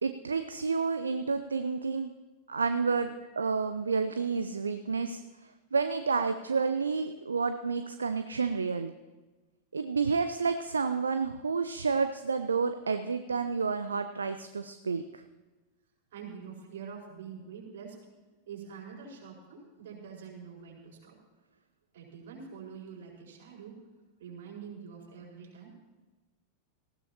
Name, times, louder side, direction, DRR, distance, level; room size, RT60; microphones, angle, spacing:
voice 1, 0.0-2.1 2.5-5.2 5.7-8.9 9.7-15.2, right 5 dB, 75° right, 9 dB, 0.5 m, -30 dB
voice 2, 16.1-18.1 18.5-21.2 21.9-23.8 24.2-25.7, right 6 dB, 55° right, -2 dB, 4.8 m, -45 dB
19.0 x 15.5 x 2.9 m, 1.2 s
figure-of-eight pair, 90°, 0 cm